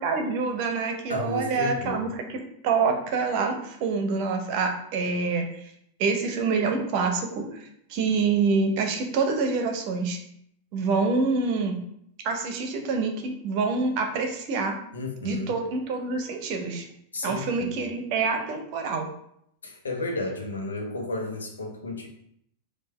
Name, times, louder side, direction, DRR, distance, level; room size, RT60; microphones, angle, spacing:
voice 1, 0.0-5.5 6.0-10.2 10.7-11.8 12.2-14.7 15.2-16.8 17.2-19.1, right 4 dB, 45° right, 4 dB, 0.8 m, -26 dB
voice 2, 1.1-2.0 14.9-15.6 17.1-17.8 19.6-22.1, left 2 dB, 70° left, 2 dB, 0.9 m, -32 dB
4.6 x 2.4 x 4.2 m, 0.72 s
figure-of-eight pair, 90°, 0 cm